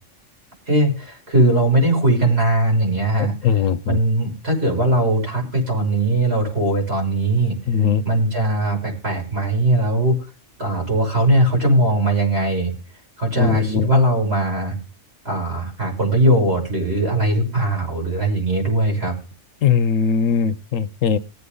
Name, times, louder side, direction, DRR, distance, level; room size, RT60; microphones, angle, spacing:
voice 1, 0.7-3.3 3.9-7.6 8.0-10.2 10.6-12.7 13.2-14.8 15.2-19.1, right 1 dB, 55° right, 6.6 m, -19 dB
voice 2, 3.2-4.0 7.7-8.0 13.4-13.9 19.6-21.2, left 7 dB, 85° left, 1.2 m, -20 dB
19.5 x 8.3 x 3.9 m
omnidirectional pair, 1.3 m